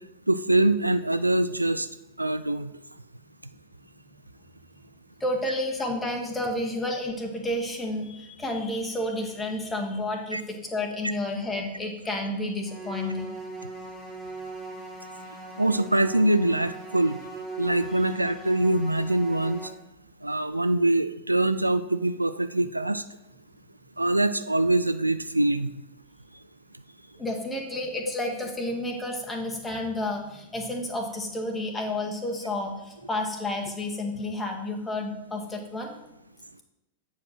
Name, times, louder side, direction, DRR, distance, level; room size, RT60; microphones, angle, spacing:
voice 1, 0.3-1.9 2.2-2.7 10.3-10.4 15.6-17.2 17.6-19.6 20.2-23.0 24.0-25.7, right 1 dB, 85° right, 13 dB, 0.3 m, -24 dB
voice 2, 5.2-13.3 27.2-35.9, left 1 dB, 10° left, 1 dB, 1.3 m, -31 dB
sound 1, 12.7-19.7, right 2 dB, 10° right, 1.7 m, -39 dB
7.9 x 4.9 x 6.4 m, 0.91 s
figure-of-eight pair, 90°, 0 cm